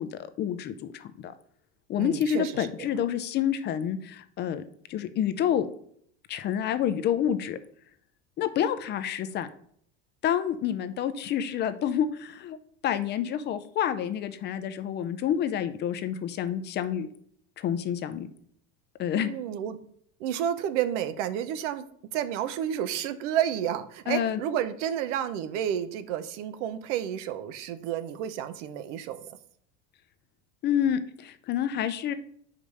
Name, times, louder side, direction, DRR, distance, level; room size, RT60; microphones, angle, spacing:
voice 1, 0.0-1.3 1.9-4.6 4.9-5.7 6.3-7.6 8.4-9.5 10.2-12.6 12.8-17.1 17.6-18.3 19.0-19.3 24.1-24.4 30.6-32.1, left 9 dB, 30° left, 11 dB, 0.4 m, -28 dB
voice 2, 2.0-2.9 19.1-19.8 20.2-21.8 22.1-29.3, right 10 dB, 85° right, 13 dB, 0.8 m, -31 dB
5.2 x 4.9 x 5.4 m, 0.63 s
cardioid pair, 150°, 35 cm